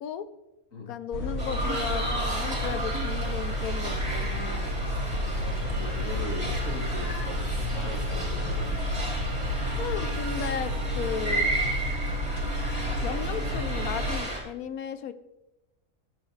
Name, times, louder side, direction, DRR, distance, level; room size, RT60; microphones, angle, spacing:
voice 1, 0.9-4.7 9.8-11.5 13.0-15.1, left 8 dB, 85° left, 12 dB, 1.2 m, -35 dB
sound 1, 1.1-14.2, equal, 50° left, 2.1 m, -31 dB
sound 2, 1.4-14.4, right 2 dB, 25° right, 2.9 m, -34 dB
voice 2, 5.3-8.8, left 2 dB, 65° left, 1 dB, 2.5 m, -39 dB
19.0 x 7.1 x 3.4 m, 0.97 s
omnidirectional pair, 1.5 m